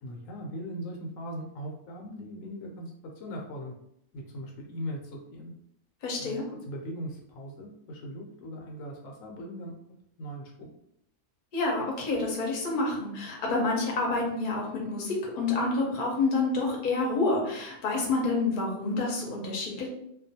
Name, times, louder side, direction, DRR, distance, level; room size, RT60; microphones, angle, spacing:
voice 1, 0.0-3.7 4.1-5.5 6.2-9.7 10.2-10.7, equal, 80° left, 1 dB, 1.0 m, -39 dB
voice 2, 6.0-6.5 11.5-19.9, left 3 dB, 50° left, -1 dB, 0.7 m, -28 dB
2.4 x 2.2 x 2.7 m, 0.75 s
omnidirectional pair, 1.4 m